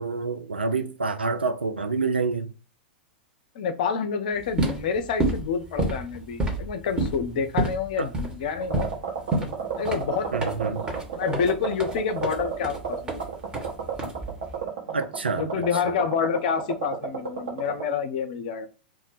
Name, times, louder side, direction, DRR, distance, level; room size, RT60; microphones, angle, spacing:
voice 1, 0.0-2.5 8.0-8.1 10.3-10.9 14.9-15.9, right 4 dB, 80° right, 0.4 m, -28 dB
voice 2, 3.5-8.9 9.8-10.4 11.1-13.3 15.3-18.7, left 6 dB, 50° left, 0.6 m, -28 dB
sound 1, 4.4-14.6, right 2 dB, 15° right, 1.0 m, -30 dB
sound 2, 8.6-17.8, right 7 dB, 50° right, 1.0 m, -32 dB
2.4 x 2.1 x 3.9 m
figure-of-eight pair, 95°, 6 cm